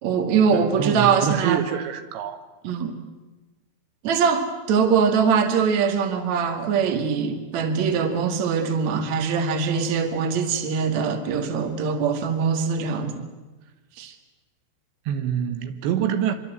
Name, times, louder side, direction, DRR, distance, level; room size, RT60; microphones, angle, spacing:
voice 1, 0.0-1.6 2.6-2.9 4.0-13.2 14.0-14.1, right 6 dB, 50° right, 2.9 m, -22 dB
voice 2, 0.5-2.4 15.1-16.3, right 9 dB, 80° right, 3.5 m, -26 dB
25.5 x 24.0 x 8.2 m
omnidirectional pair, 5.1 m